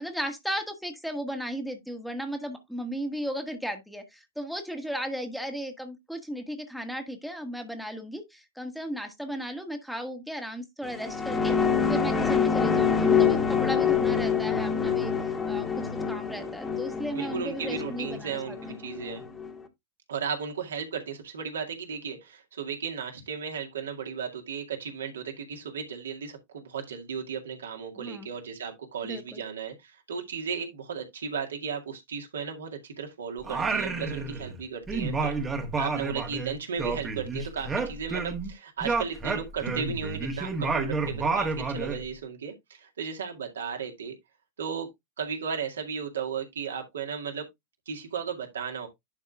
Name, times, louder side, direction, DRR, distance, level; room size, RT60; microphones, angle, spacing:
voice 1, 0.0-15.1 15.5-18.6 28.0-28.3 29.0-29.4, equal, ahead, 1.6 m, -35 dB
sound 1, 10.9-19.5, left 6 dB, 15° left, 1.5 m, -26 dB
voice 2, 17.1-19.2 20.1-35.3 35.8-44.1 44.6-44.9 45.2-47.4 47.9-48.9, right 6 dB, 65° right, 2.1 m, -35 dB
Singing, 33.4-34.6 34.9-38.5 38.8-42.0, right 4 dB, 15° right, 1.5 m, -30 dB
11.0 x 5.3 x 2.4 m
figure-of-eight pair, 90°, 0 cm